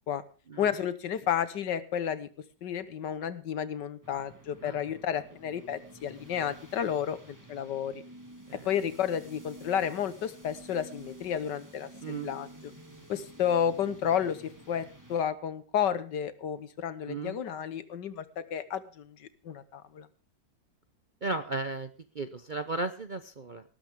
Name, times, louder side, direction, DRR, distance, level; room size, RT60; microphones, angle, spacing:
voice 1, 0.6-2.3 2.6-7.9 8.6-12.5 13.1-18.2 18.5-20.1, left 8 dB, 80° left, 14 dB, 1.8 m, -31 dB
sound 1, 4.0-15.2, right 1 dB, 10° right, 2.4 m, -51 dB
voice 2, 12.0-12.3 12.9-13.0 17.1-17.4 21.2-23.6, right 3 dB, 45° right, 10 dB, 0.6 m, -35 dB
18.5 x 12.5 x 3.6 m, 0.35 s
omnidirectional pair, 1.9 m